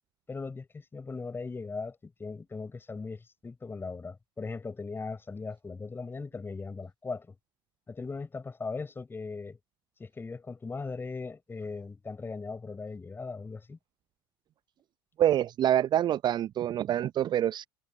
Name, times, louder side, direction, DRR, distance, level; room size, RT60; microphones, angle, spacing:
voice 1, 0.3-7.3 7.9-9.6 10.0-13.8, left 4 dB, 15° left, 6.4 m, -39 dB
voice 2, 15.2-17.7, right 11 dB, 35° right, 0.7 m, -26 dB
figure-of-eight pair, 70°, 13 cm